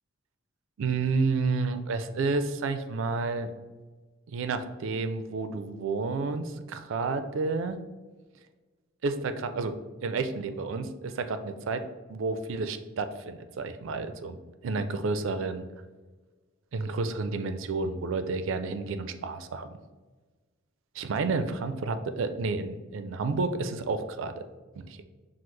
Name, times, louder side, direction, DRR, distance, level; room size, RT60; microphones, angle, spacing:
voice 1, 0.8-3.5 4.3-7.8 9.0-11.8 12.1-14.4 14.6-15.6 16.7-19.7 21.0-24.3 24.8-25.0, right 4 dB, 75° right, 9 dB, 0.4 m, -30 dB
5.9 x 2.0 x 3.2 m, 1.3 s
head